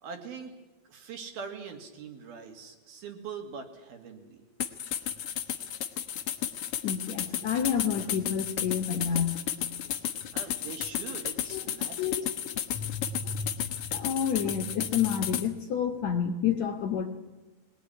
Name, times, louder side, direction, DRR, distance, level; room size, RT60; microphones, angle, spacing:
voice 1, 0.0-0.5 0.9-4.4 10.3-12.1, right 6 dB, 70° right, 5 dB, 4.0 m, -42 dB
sound 1, 4.6-15.5, left 10 dB, 85° left, 1.2 m, -33 dB
voice 2, 6.8-9.5 11.5-11.6 12.0-12.2 12.7-17.1, left 7 dB, 60° left, 4 dB, 2.0 m, -29 dB
23.0 x 19.0 x 10.0 m, 1.1 s
omnidirectional pair, 4.6 m